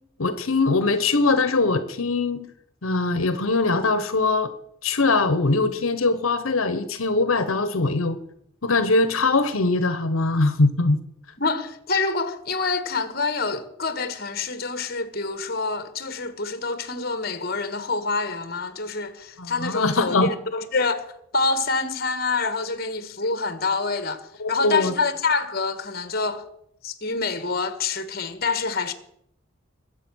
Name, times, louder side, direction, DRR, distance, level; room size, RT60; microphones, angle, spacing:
voice 1, 0.2-2.5 2.8-4.5 4.8-8.2 8.6-11.0 19.4-20.3 24.4-24.9, left 3 dB, 85° left, 1.0 m, -22 dB
voice 2, 11.4-26.5 26.8-28.9, left 4 dB, 50° left, 1.5 m, -26 dB
21.5 x 7.9 x 6.3 m
head